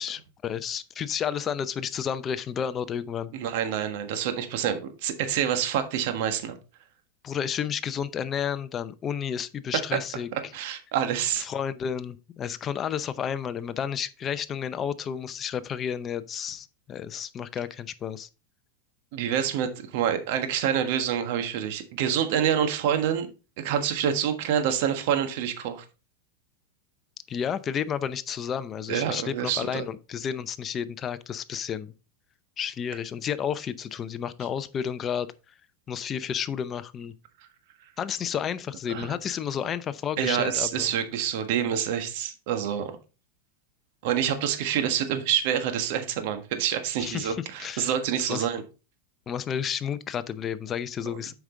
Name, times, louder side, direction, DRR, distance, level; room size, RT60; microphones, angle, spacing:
voice 1, 0.0-3.3 7.2-10.3 11.4-18.3 27.3-31.9 32.6-35.3 35.9-37.1 38.0-40.9 47.0-47.9 48.3-48.5 49.3-51.3, left 8 dB, 30° left, 0.6 m, -31 dB
voice 2, 3.3-6.5 10.5-11.5 19.1-23.3 23.6-25.8 28.9-29.8 38.9-39.1 40.2-42.9 44.0-48.6, right 9 dB, 60° right, 1.4 m, -27 dB
7.9 x 5.2 x 3.8 m
supercardioid pair, 130°, 0 cm